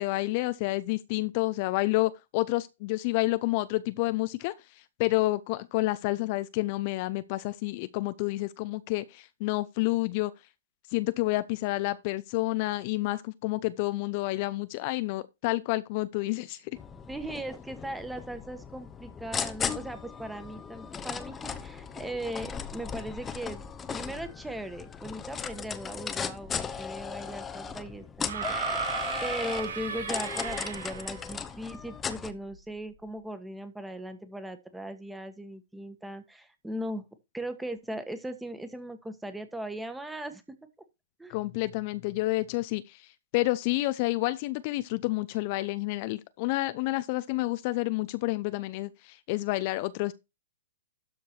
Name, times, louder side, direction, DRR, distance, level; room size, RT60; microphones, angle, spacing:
voice 1, 0.0-4.5 5.0-10.3 10.9-16.8 41.3-43.1 43.3-50.1, left 20 dB, 45° left, 0.6 m, -29 dB
sound 1, 16.7-32.3, left 6 dB, 15° left, 0.9 m, -37 dB
voice 2, 17.1-23.6 23.9-37.1 37.3-40.4 41.2-41.4, right 1 dB, 5° right, 1.5 m, -38 dB
sound 2, 28.2-31.3 32.5-32.6, right 6 dB, 80° right, 6.3 m, -35 dB
12.5 x 4.7 x 4.5 m
hypercardioid pair, 130°, 0 cm